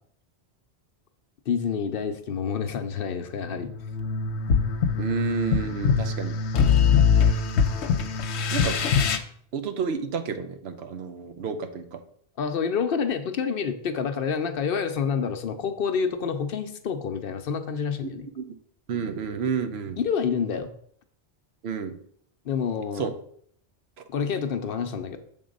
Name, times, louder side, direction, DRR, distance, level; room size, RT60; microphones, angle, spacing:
voice 1, 1.5-3.7 12.4-18.3 20.0-20.7 22.5-23.1 24.1-25.2, left 6 dB, 60° left, 8 dB, 0.7 m, -28 dB
sound 1, 3.4-9.2, left 6 dB, 85° left, 0.9 m, -23 dB
voice 2, 5.0-6.4 8.5-8.8 9.5-12.0 18.4-18.5 18.9-20.0 21.6-22.0 23.0-23.1, right 5 dB, 70° right, 8 dB, 0.9 m, -30 dB
6.9 x 3.7 x 5.2 m, 0.64 s
omnidirectional pair, 1.1 m